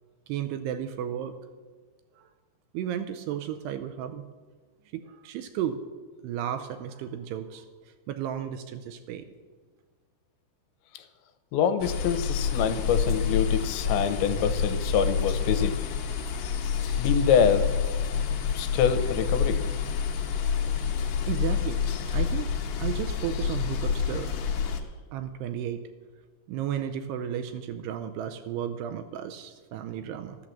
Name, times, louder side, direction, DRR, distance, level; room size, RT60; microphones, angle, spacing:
voice 1, 0.3-1.4 2.2-2.3 2.7-4.2 4.9-5.8 6.2-7.7 8.1-9.3 21.3-21.8 22.1-22.5 22.8-24.3 25.1-25.8 26.5-30.4, right 9 dB, 85° right, 8 dB, 2.5 m, -33 dB
voice 2, 11.5-15.8 17.0-17.7 18.5-19.6, left 7 dB, 90° left, 10 dB, 3.2 m, -25 dB
sound 1, 11.8-24.8, left 6 dB, 65° left, 2.1 m, -28 dB
13.0 x 11.0 x 7.4 m, 1.4 s
omnidirectional pair, 5.2 m